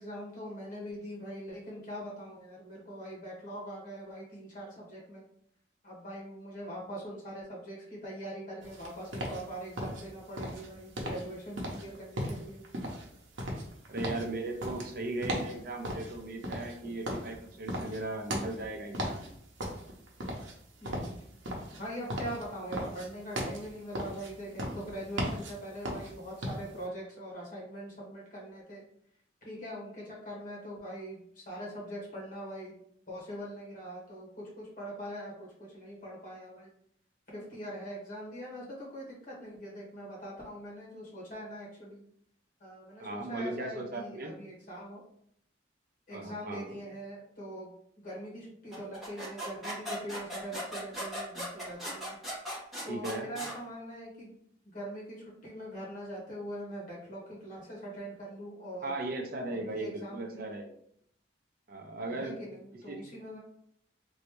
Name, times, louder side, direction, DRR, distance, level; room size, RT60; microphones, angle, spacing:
voice 1, 0.0-5.2 5.8-12.6 16.8-16.9 20.8-21.1 21.7-28.8 29.4-32.7 33.1-36.7 37.3-42.0 42.6-45.0 46.1-52.2 52.8-54.4 54.6-58.9 59.5-60.4 62.1-63.4, equal, 45° left, -5 dB, 1.4 m, -42 dB
sound 1, 8.6-26.8, equal, 85° right, 0.8 m, -38 dB
voice 2, 13.9-19.3 43.0-44.4 46.1-46.8 52.9-53.3 58.8-60.7 61.7-62.4 62.9-63.0, right 2 dB, 50° right, 3 dB, 0.6 m, -37 dB
sound 2, 48.7-53.6, equal, ahead, 1.5 m, -38 dB
3.2 x 2.7 x 3.1 m, 0.69 s
head